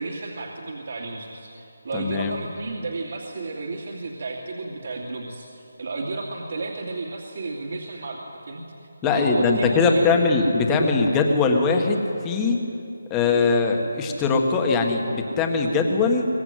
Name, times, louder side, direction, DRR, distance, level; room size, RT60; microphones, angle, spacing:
voice 1, 0.0-8.6 9.0-10.2, right 3 dB, 50° right, -1 dB, 2.6 m, -32 dB
voice 2, 1.9-2.3 9.0-12.6 13.1-16.3, left 4 dB, 10° left, 3 dB, 1.7 m, -21 dB
23.5 x 20.5 x 9.4 m, 2.7 s
hypercardioid pair, 175°, 0 cm